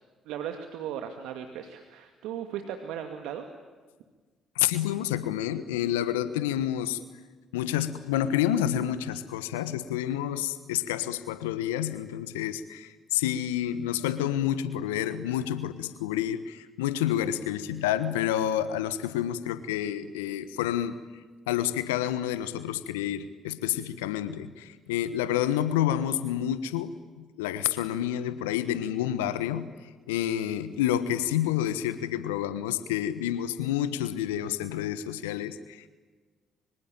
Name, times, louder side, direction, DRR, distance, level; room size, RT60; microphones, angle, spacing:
voice 1, 0.3-3.4, right 9 dB, 70° right, 6 dB, 2.2 m, -37 dB
voice 2, 4.5-7.0 7.5-21.0 21.5-35.9, left 11 dB, 80° left, 13 dB, 1.3 m, -29 dB
26.0 x 25.0 x 9.0 m, 1.4 s
hypercardioid pair, 50°, 0 cm